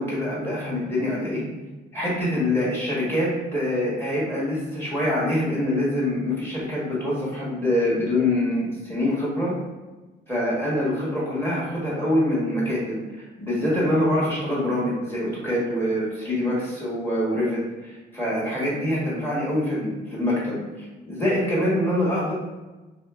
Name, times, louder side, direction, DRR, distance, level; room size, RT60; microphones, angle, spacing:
voice 1, 0.0-1.4 1.9-9.5 10.3-22.3, left 1 dB, 10° left, -6 dB, 1.1 m, -25 dB
2.7 x 2.7 x 2.3 m, 1.2 s
cardioid pair, 90°, 20 cm